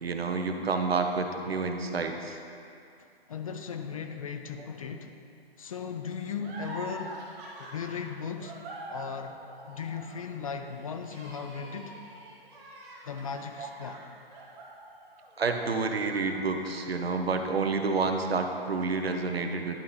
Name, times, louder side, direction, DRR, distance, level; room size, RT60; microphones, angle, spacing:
voice 1, 0.0-2.4 13.6-13.7 15.4-19.8, right 4 dB, 80° right, 5 dB, 0.8 m, -29 dB
voice 2, 3.3-5.1 5.6-7.2 7.6-8.6 8.9-9.4 9.6-12.0 13.0-14.1, left 6 dB, 35° left, 6 dB, 0.4 m, -37 dB
sound 1, 6.4-15.5 15.8-16.9, right 1 dB, 30° right, 1.4 m, -45 dB
11.0 x 4.2 x 3.9 m, 2.4 s
figure-of-eight pair, 130°, 30 cm